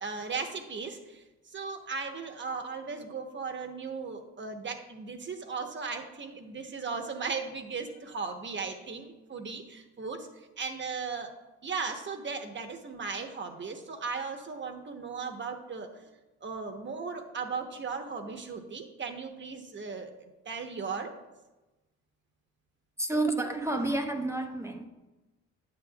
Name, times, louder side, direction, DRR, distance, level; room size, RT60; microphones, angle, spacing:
voice 1, 0.0-1.2 1.5-11.3 11.6-16.0 16.4-21.1, right 5 dB, 40° right, 5 dB, 1.0 m, -37 dB
voice 2, 23.0-24.8, right 2 dB, 10° right, 4 dB, 0.7 m, -30 dB
9.7 x 7.8 x 2.3 m, 1.1 s
cardioid pair, 90°, 30 cm